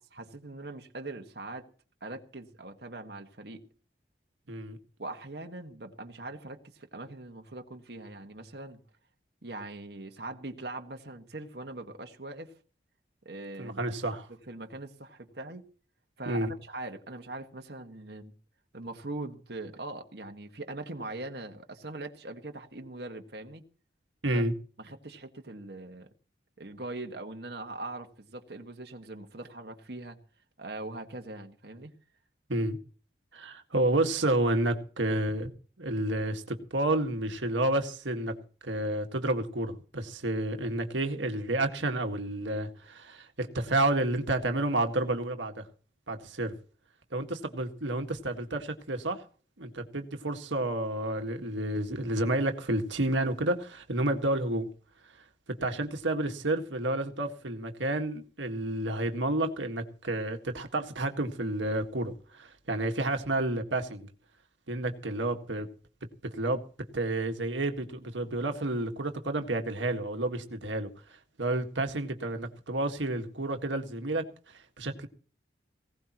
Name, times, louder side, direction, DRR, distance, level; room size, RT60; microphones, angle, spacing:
voice 1, 0.1-1.7 2.0-3.6 5.0-8.8 9.4-12.5 13.2-13.8 14.5-15.7 16.2-18.3 18.7-23.6 24.3-24.4 24.8-26.1 26.6-30.2 30.6-31.9, right 2 dB, 60° right, 1.7 m, -41 dB
voice 2, 13.6-14.3 16.3-16.5 24.2-24.5 32.5-32.8 33.3-35.5 35.8-38.3 38.6-45.7 46.1-46.5 47.1-49.2 49.6-54.7 55.5-64.1 64.7-65.7 66.2-66.6 66.9-75.1, right 1 dB, 85° right, 1.8 m, -30 dB
19.5 x 17.0 x 3.1 m
head